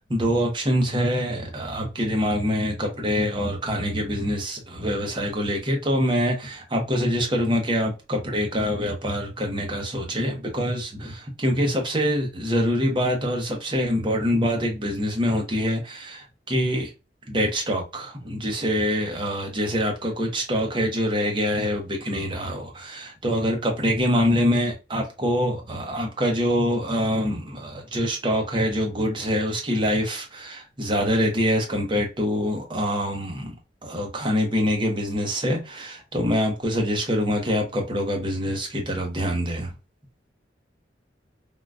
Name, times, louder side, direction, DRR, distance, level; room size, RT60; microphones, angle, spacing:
voice 1, 0.0-16.9 17.3-33.5 33.8-39.7, equal, 25° right, 0.8 m, -25 dB
3.7 x 2.2 x 2.4 m
head